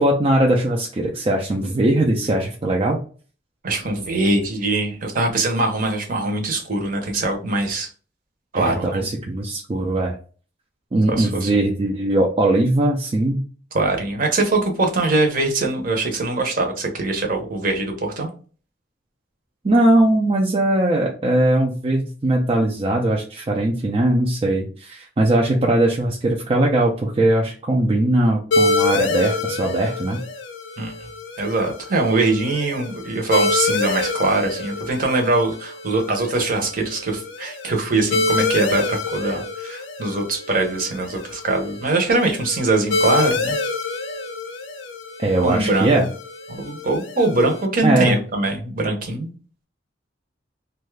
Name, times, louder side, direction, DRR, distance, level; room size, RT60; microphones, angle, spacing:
voice 1, 0.0-3.0 8.5-10.1 10.9-13.4 19.6-30.2 45.2-46.1 47.8-48.2, right 1 dB, 30° right, -1 dB, 0.4 m, -20 dB
voice 2, 3.6-7.9 8.5-9.0 11.1-11.5 13.7-18.3 30.8-30.9 31.4-43.6 45.4-45.9 46.6-49.3, right 2 dB, 45° right, 2 dB, 0.8 m, -22 dB
sound 1, 28.5-47.7, left 3 dB, 75° left, 0.6 m, -27 dB
2.6 x 2.3 x 3.2 m, 0.39 s
head